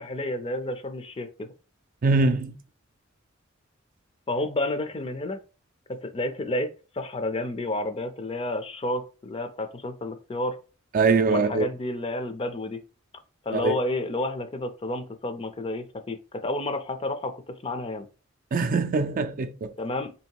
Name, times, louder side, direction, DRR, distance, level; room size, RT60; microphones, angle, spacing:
voice 1, 0.0-1.5 4.3-5.4 5.9-10.6 11.3-12.8 13.5-18.0 19.8-20.1, left 1 dB, 25° left, 0.5 m, -30 dB
voice 2, 2.0-2.6 10.9-11.7 13.5-13.8 18.5-19.7, right 3 dB, 45° right, 0.4 m, -23 dB
3.1 x 2.8 x 4.5 m
head